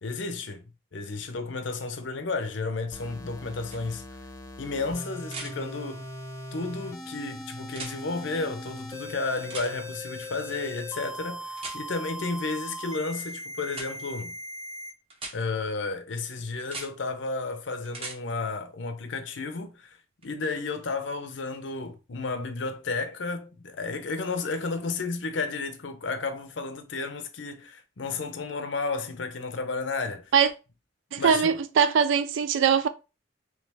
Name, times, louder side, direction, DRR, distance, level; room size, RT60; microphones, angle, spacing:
voice 1, 0.0-0.6 0.9-4.0 4.6-6.1 6.5-14.4 15.3-20.0 20.2-30.3 31.2-31.5, left 3 dB, 70° left, 0.6 m, -32 dB
sound 1, 2.9-14.9, equal, 15° left, 0.7 m, -40 dB
sound 2, 3.7-3.8 5.3-5.5 7.7-8.0 9.5-9.7 11.6-11.8 13.7-13.9 15.1-15.4 16.6-16.9 17.9-18.2 20.2-20.3, right 3 dB, 30° right, 0.9 m, -38 dB
voice 2, 31.1-32.9, right 7 dB, 75° right, 0.4 m, -22 dB
3.3 x 3.2 x 3.4 m
head